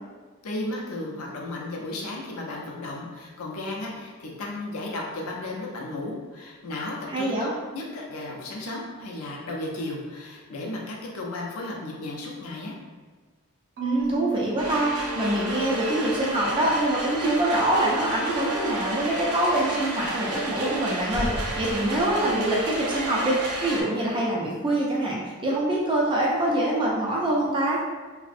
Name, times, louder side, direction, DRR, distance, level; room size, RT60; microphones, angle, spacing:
voice 1, 0.4-12.7, left 2 dB, 75° left, -2 dB, 0.5 m, -34 dB
voice 2, 7.1-7.5 13.8-27.8, right 1 dB, 20° right, -3 dB, 0.4 m, -25 dB
Marimba xylophone / Wood, 13.8-16.0, right 4 dB, 50° right, 0.7 m, -34 dB
sound 1, 14.6-23.8, right 1 dB, 90° right, 0.5 m, -31 dB
2.5 x 2.0 x 2.4 m, 1.4 s
head